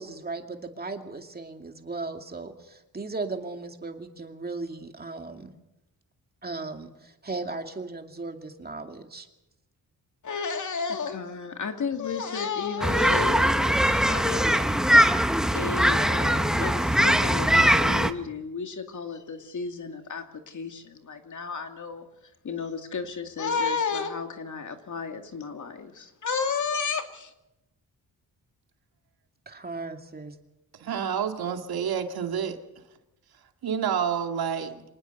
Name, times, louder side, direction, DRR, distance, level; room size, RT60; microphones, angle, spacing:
voice 1, 0.0-5.5 6.4-9.3 29.5-30.4, right 3 dB, 25° right, 5 dB, 2.4 m, -37 dB
voice 2, 10.2-15.0 15.5-22.1 22.4-27.3, left 5 dB, 55° left, 5 dB, 2.5 m, -32 dB
sound 1, 12.8-18.1, equal, ahead, 1.0 m, -21 dB
voice 3, 30.8-32.6 33.6-34.8, right 7 dB, 85° right, 5 dB, 2.2 m, -28 dB
25.5 x 19.5 x 6.9 m, 0.90 s
wide cardioid pair, 130°, 36 cm